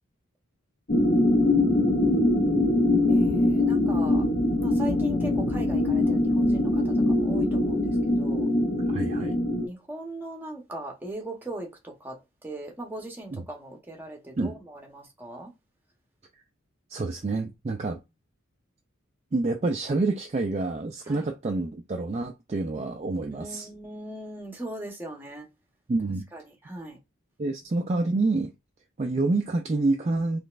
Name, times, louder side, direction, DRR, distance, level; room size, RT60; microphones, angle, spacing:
sound 1, 0.9-9.7, left 2 dB, 45° left, 0.7 m, -23 dB
voice 1, 3.0-4.3 4.6-7.9 8.1-8.5 9.6-15.5 21.1-21.3 23.3-25.5 26.3-27.0, right 1 dB, 10° right, 0.9 m, -39 dB
voice 2, 8.9-9.4 13.3-13.4 14.4-14.6 16.9-18.0 19.3-23.7 25.9-26.3 27.4-28.5 29.0-30.4, right 3 dB, 30° right, 0.3 m, -27 dB
4.0 x 3.1 x 2.4 m
head